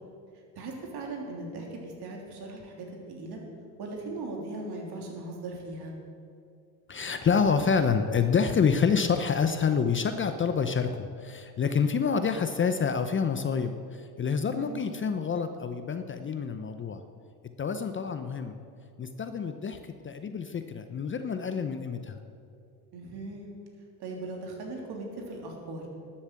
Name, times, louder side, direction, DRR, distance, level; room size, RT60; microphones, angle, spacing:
voice 1, 0.5-3.4 3.8-5.9 14.5-14.8 22.9-23.5 24.0-25.8, right 2 dB, 55° right, 0 dB, 3.3 m, -39 dB
voice 2, 6.9-17.0 17.6-18.6 19.0-22.2, left 6 dB, 25° left, 9 dB, 0.7 m, -27 dB
12.5 x 7.3 x 8.2 m, 2.4 s
supercardioid pair, 95°, 46 cm